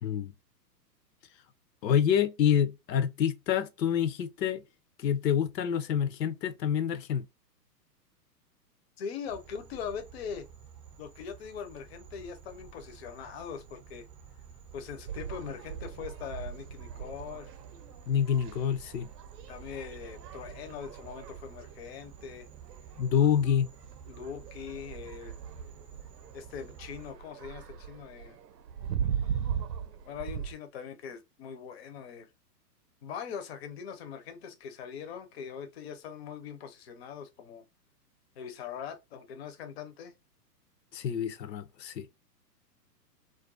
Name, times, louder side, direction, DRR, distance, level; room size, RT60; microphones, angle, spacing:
voice 1, 0.0-0.3 1.8-4.6 5.0-7.2 18.1-19.1 23.0-23.7 40.9-42.1, left 8 dB, 85° left, 0.6 m, -27 dB
voice 2, 9.0-10.5 11.0-14.1 14.7-17.5 19.5-22.5 24.1-25.4 26.3-28.4 30.1-32.3 33.0-37.6 38.4-40.1, left 7 dB, 40° left, 0.5 m, -41 dB
sound 1, 9.3-27.1, right 8 dB, 30° right, 0.5 m, -51 dB
sound 2, 15.1-30.5, right 8 dB, 75° right, 0.6 m, -40 dB
2.4 x 2.2 x 2.4 m
hypercardioid pair, 130°, 50 cm